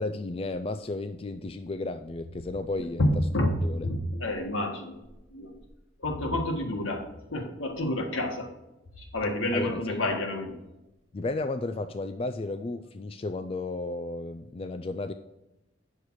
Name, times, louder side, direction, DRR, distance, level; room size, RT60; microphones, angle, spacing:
voice 1, 0.0-3.0 3.6-3.9 9.5-10.0 11.1-15.1, left 2 dB, 30° left, 9 dB, 0.3 m, -33 dB
voice 2, 3.0-3.6 3.8-5.0 5.3-5.6 6.0-8.5 9.0-10.6, left 1 dB, 80° left, 2 dB, 1.7 m, -29 dB
8.5 x 6.6 x 4.7 m, 0.96 s
head